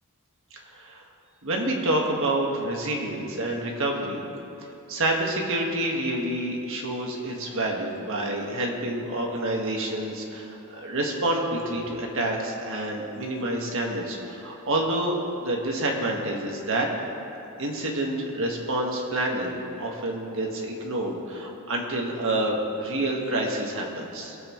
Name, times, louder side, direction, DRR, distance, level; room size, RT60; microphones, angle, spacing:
voice 1, 0.7-1.0 1.4-4.2 4.9-16.9 17.6-24.3, right 1 dB, 65° right, 0 dB, 1.6 m, -28 dB
20.5 x 8.0 x 3.1 m, 2.9 s
head